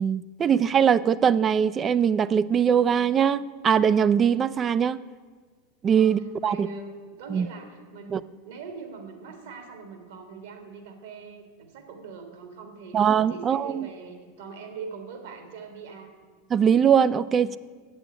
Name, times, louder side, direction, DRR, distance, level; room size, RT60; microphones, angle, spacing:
voice 1, 0.0-5.0 5.8-6.7 7.3-7.5 8.1-8.2 12.9-13.9 16.5-17.6, right 7 dB, 30° right, 17 dB, 0.4 m, -21 dB
voice 2, 6.0-6.9 7.2-16.1, right 5 dB, 70° right, 5 dB, 1.9 m, -42 dB
8.6 x 7.1 x 8.4 m, 1.5 s
hypercardioid pair, 95°, 0 cm